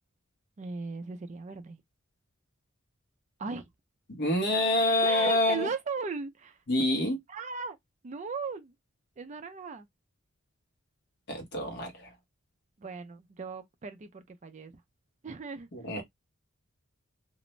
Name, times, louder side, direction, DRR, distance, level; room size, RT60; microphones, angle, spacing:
voice 1, 0.6-1.8 3.4-3.6 4.5-4.6 5.0-6.6 7.3-7.8 8.0-8.7 9.2-9.9 12.8-14.7 15.2-15.7, right 4 dB, 35° right, 0.3 m, -37 dB
voice 2, 4.1-5.7 6.7-7.2 11.3-12.1 15.7-16.0, left 1 dB, 55° left, 1.0 m, -27 dB
2.4 x 2.0 x 3.1 m
head